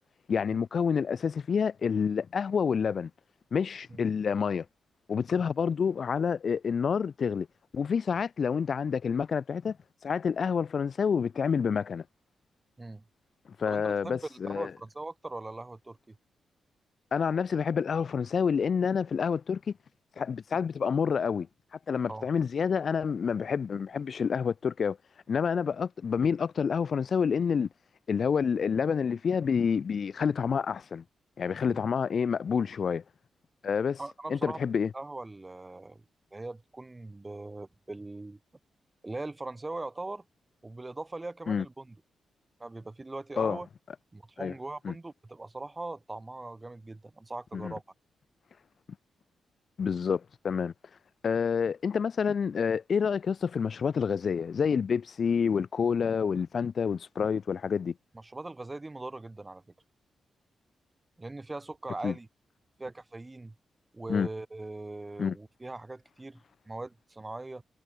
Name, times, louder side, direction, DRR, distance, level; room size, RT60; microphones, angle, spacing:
voice 1, 0.3-3.1 3.5-4.7 5.1-7.5 7.7-9.8 10.0-12.0 13.6-14.7 17.1-19.7 20.2-21.5 21.9-25.0 25.3-27.7 28.1-31.0 31.4-33.0 33.6-34.0 34.3-34.9 41.5-41.6 43.4-43.6 44.4-44.5 44.8-44.9 47.5-47.7 49.8-50.7 51.2-57.9 62.0-62.1 64.1-64.3 65.2-65.4, left 6 dB, 55° left, 0.9 m, -28 dB
voice 2, 13.7-16.2 22.1-22.3 34.0-34.6 34.9-36.0 36.3-38.4 39.0-40.2 40.6-42.0 42.6-43.7 44.1-47.8 58.2-59.6 61.2-62.3 62.8-63.6 63.9-66.4 66.7-67.6, right 2 dB, 20° right, 3.7 m, -40 dB
cardioid pair, 95°, 0 cm